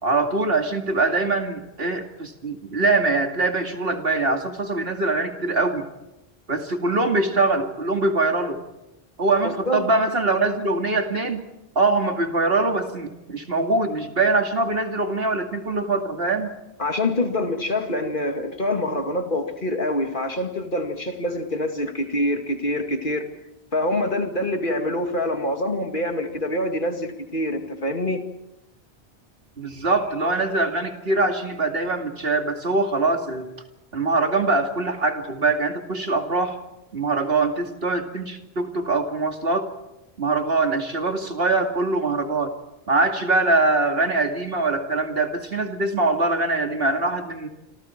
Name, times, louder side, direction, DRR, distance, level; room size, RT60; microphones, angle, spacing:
voice 1, 0.0-5.9 6.5-8.6 9.2-11.4 11.8-16.6 29.6-33.5 33.9-36.6 36.9-39.7 40.2-42.5 42.9-47.5, right 3 dB, 70° right, 4 dB, 2.6 m, -23 dB
voice 2, 16.8-23.2 23.7-28.2, left 1 dB, 55° left, 4 dB, 2.5 m, -25 dB
28.0 x 26.0 x 4.5 m, 0.91 s
omnidirectional pair, 1.0 m